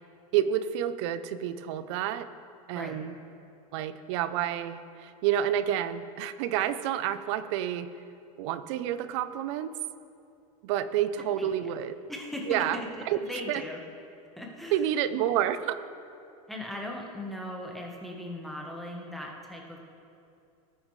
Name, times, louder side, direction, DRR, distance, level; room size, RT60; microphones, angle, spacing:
voice 1, 0.3-2.3 2.7-3.1 3.7-7.9 8.4-9.7 10.6-12.0 12.5-12.8 13.1-13.2 13.5-13.6 14.7-15.8, right 10 dB, 55° right, 13 dB, 0.6 m, -29 dB
voice 2, 12.1-13.8 14.4-14.8 16.5-19.8, left 1 dB, ahead, -1 dB, 1.2 m, -38 dB
19.0 x 8.8 x 3.2 m, 2.6 s
supercardioid pair, 155°, 18 cm